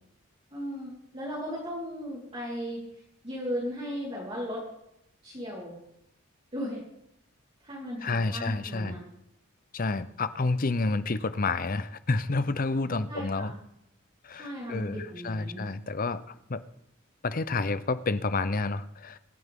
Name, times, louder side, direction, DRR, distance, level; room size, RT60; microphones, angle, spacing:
voice 1, 0.5-2.8 3.2-4.6 5.2-5.7 6.5-6.8 7.6-9.0 13.1-13.5 14.4-15.6, equal, 30° right, -9 dB, 4.3 m, -36 dB
voice 2, 8.0-9.0 9.7-13.5 14.2-16.6 17.2-19.2, left 3 dB, 45° left, 13 dB, 0.6 m, -29 dB
24.5 x 9.5 x 3.7 m, 0.79 s
head